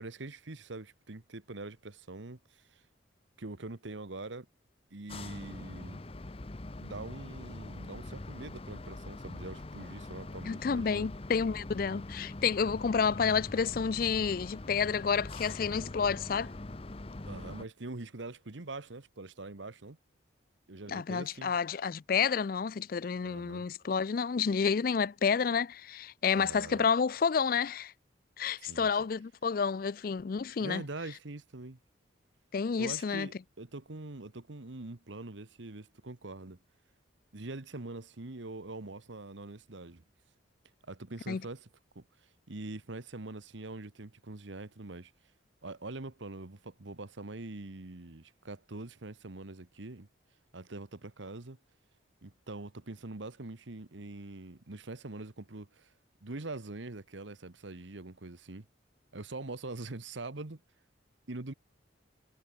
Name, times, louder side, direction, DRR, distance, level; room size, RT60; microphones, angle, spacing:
voice 1, 0.0-2.8 3.4-4.5 4.9-6.0 6.8-11.1 17.3-20.0 20.7-21.5 23.2-23.6 26.4-26.9 28.6-28.9 30.6-31.8 32.8-36.6 37.3-40.0 40.9-41.7 41.9-42.0 42.5-45.1 45.6-50.1 50.5-51.6 52.2-55.9 56.2-58.7 59.1-60.6 61.3-61.5, right 2 dB, 75° right, 1.3 m, -43 dB
sound 1, 5.1-17.7, left 2 dB, 30° left, 0.7 m, -43 dB
voice 2, 10.5-16.5 20.9-27.9 28.4-30.8 32.5-33.3 41.3-41.4, left 6 dB, 45° left, 0.4 m, -30 dB
head